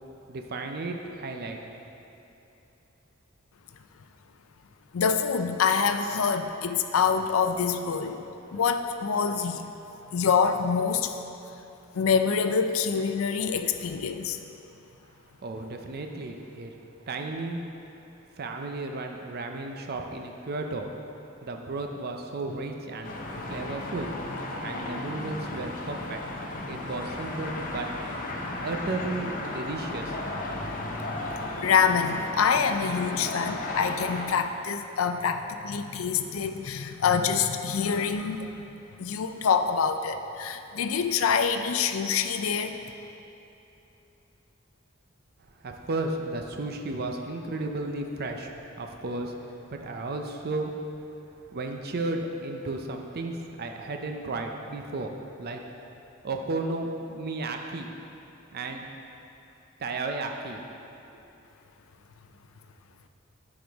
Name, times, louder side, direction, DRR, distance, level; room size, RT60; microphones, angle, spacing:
voice 1, 0.3-1.6 15.0-15.1 15.4-16.7 17.1-17.6 18.4-20.9 21.4-23.2 23.5-24.1 24.6-26.2 26.7-27.9 28.6-30.1 45.6-50.7 51.5-55.1 55.4-55.6 56.2-57.9 58.5-58.9 59.8-60.6, right 2 dB, 50° right, 3 dB, 0.6 m, -33 dB
voice 2, 4.9-8.2 8.5-9.7 10.1-11.2 11.9-14.4 31.6-38.6 39.0-42.8, left 6 dB, 85° left, 8 dB, 0.4 m, -26 dB
sound 1, 23.0-34.3, left 2 dB, 45° left, 0.8 m, -35 dB
10.0 x 5.0 x 3.5 m, 3.0 s
head